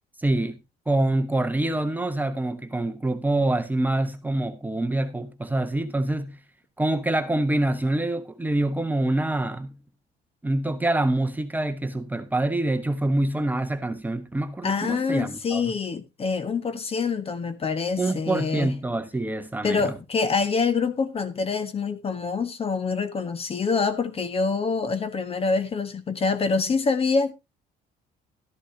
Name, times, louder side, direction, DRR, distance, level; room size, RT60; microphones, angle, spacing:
voice 1, 0.2-0.6 0.9-6.4 6.8-9.7 10.4-15.6 18.0-20.0, right 2 dB, 10° right, 1.2 m, -25 dB
voice 2, 14.6-18.7 19.6-27.3, left 4 dB, 35° left, 1.5 m, -26 dB
13.0 x 11.5 x 2.8 m
cardioid pair, 110°, 17 cm